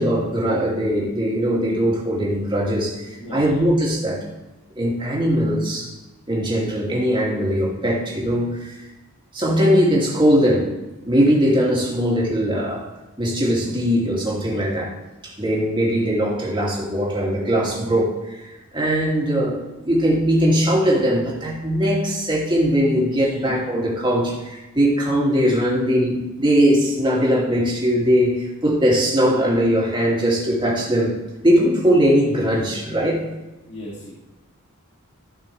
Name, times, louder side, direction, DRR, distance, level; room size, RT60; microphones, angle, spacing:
voice 1, 0.0-4.2 4.7-5.9 6.3-8.8 9.3-10.7 11.1-12.9 13.2-15.0 15.2-18.4 18.7-31.1 31.4-33.2, equal, 20° right, -4 dB, 2.6 m, -20 dB
voice 2, 3.2-3.6 23.2-23.6 33.7-34.1, equal, 55° left, -7 dB, 2.6 m, -36 dB
15.5 x 6.0 x 3.4 m, 1.0 s
head